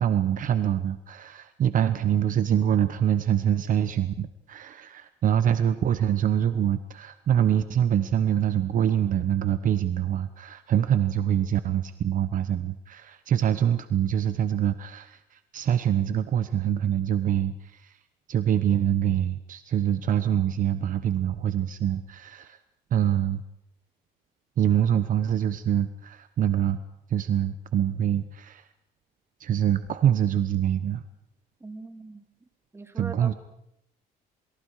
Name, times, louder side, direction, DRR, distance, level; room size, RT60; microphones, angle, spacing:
voice 1, 0.0-17.9 18.3-22.6 22.9-23.4 24.6-26.8 27.1-28.6 29.4-31.0 33.0-33.3, right 10 dB, 50° right, 11 dB, 1.1 m, -25 dB
voice 2, 31.6-32.2 32.7-33.3, right 3 dB, 15° right, 6 dB, 2.8 m, -41 dB
27.5 x 24.5 x 4.9 m, 0.81 s
cardioid pair, 110°, 17 cm